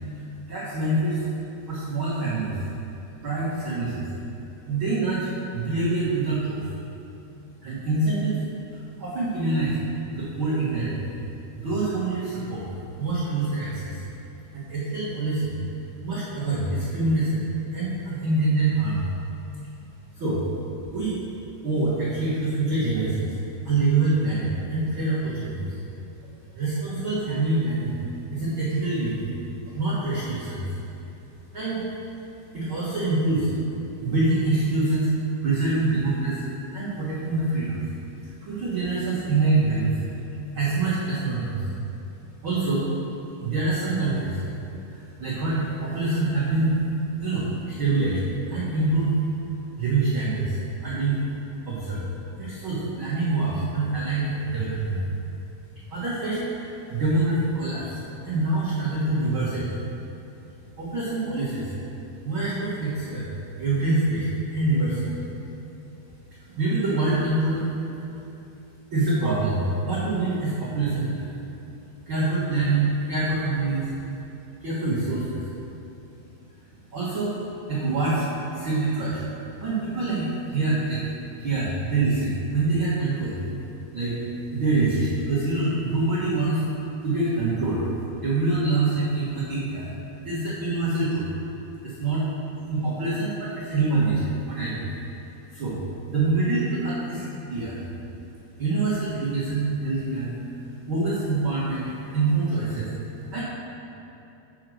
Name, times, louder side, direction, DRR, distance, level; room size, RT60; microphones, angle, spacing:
voice 1, 0.5-1.2 1.7-2.6 3.2-4.1 4.7-6.7 7.6-8.4 8.7-9.8 10.1-11.1 11.5-12.7 12.9-14.0 14.5-15.6 16.0-17.4 17.7-19.1 20.1-20.4 20.9-21.2 21.6-23.3 23.6-25.7 26.5-27.9 28.3-29.3 29.7-30.8 31.5-31.8 32.5-33.5 34.0-35.1 35.4-37.8 38.4-40.0 40.5-41.7 42.4-42.9 43.4-44.4 44.9-46.8 47.2-48.2 48.5-49.2 49.8-51.2 51.6-52.1 52.4-55.0 55.9-59.7 60.8-61.7 62.2-63.3 63.6-65.2 66.6-67.6 68.9-71.3 72.1-74.0 74.6-75.4 76.9-77.3 77.7-78.3 78.5-79.2 79.6-81.1 81.4-83.4 83.9-84.1 84.5-86.6 87.0-87.9 88.2-89.9 90.2-91.3 91.8-92.2 92.7-94.9 95.5-95.8 96.1-97.2 97.5-97.8 98.6-100.3 100.9-102.9 103.3-103.4, right 3 dB, 75° right, -10 dB, 1.1 m, -25 dB
9.6 x 5.1 x 6.2 m, 2.9 s
omnidirectional pair, 4.8 m